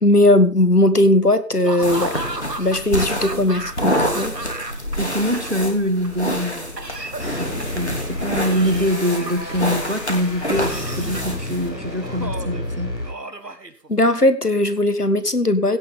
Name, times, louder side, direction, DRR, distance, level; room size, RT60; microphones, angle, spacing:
voice 1, 0.0-2.1 2.6-4.3 13.9-15.8, left 1 dB, 65° left, 12 dB, 1.6 m, -18 dB
Laughter / Cough, 1.6-5.0 5.2-6.1 6.8-7.9 8.5-9.7 10.4-11.4 12.0-12.6 13.0-14.3, right 2 dB, 75° right, 1.9 m, -34 dB
sound 1, 1.8-11.7, equal, 40° left, 2.9 m, -27 dB
voice 2, 5.0-6.9 7.4-12.9, equal, 45° right, 10 dB, 1.6 m, -24 dB
sound 2, 7.2-13.1, left 1 dB, 80° left, 6.3 m, -31 dB
16.5 x 11.0 x 3.8 m, 0.35 s
figure-of-eight pair, 175°, 49 cm